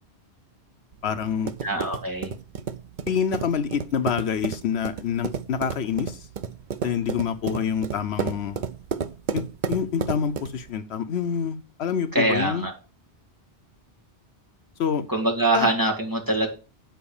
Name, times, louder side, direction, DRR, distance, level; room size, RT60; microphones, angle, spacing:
sound 1, 0.9-10.7, right 7 dB, 50° right, 0.7 m, -32 dB
voice 1, 1.0-1.5 3.1-6.3 6.8-8.6 9.3-9.4 9.7-12.6 14.8-15.0 15.5-15.7, left 7 dB, 70° left, 0.9 m, -26 dB
voice 2, 1.6-2.3 12.1-12.7 15.1-16.5, right 2 dB, 20° right, 2.3 m, -23 dB
9.0 x 4.7 x 7.0 m
omnidirectional pair, 1.1 m